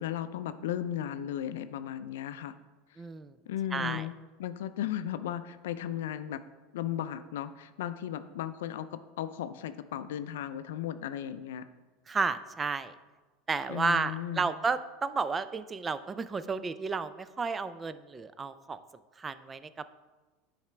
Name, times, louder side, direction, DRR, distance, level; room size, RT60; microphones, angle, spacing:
voice 1, 0.0-2.6 3.5-4.1 4.4-6.4 6.7-11.6 13.7-14.5, left 11 dB, 75° left, 12 dB, 0.4 m, -35 dB
voice 2, 3.0-3.3 3.7-4.1 12.1-12.9 13.5-18.8 19.2-19.7, right 4 dB, 25° right, 13 dB, 0.4 m, -32 dB
9.4 x 4.9 x 3.3 m, 1.2 s
hypercardioid pair, 85°, 0 cm